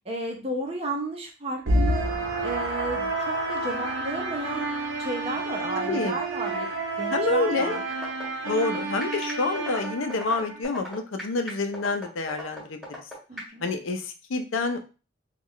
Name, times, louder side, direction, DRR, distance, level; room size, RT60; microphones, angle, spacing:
voice 1, 0.1-2.1 2.4-4.7 5.0-6.7 7.0-7.8 13.3-13.6, right 2 dB, 30° right, 1 dB, 0.7 m, -33 dB
sound 1, 1.7-10.6, right 2 dB, 80° right, 0.8 m, -29 dB
voice 2, 7.1-7.8 8.4-12.9 13.6-14.8, left 3 dB, 90° left, 6 dB, 0.5 m, -28 dB
sound 2, 7.9-13.5, left 1 dB, ahead, 1.7 m, -36 dB
3.7 x 2.4 x 3.1 m, 0.32 s
head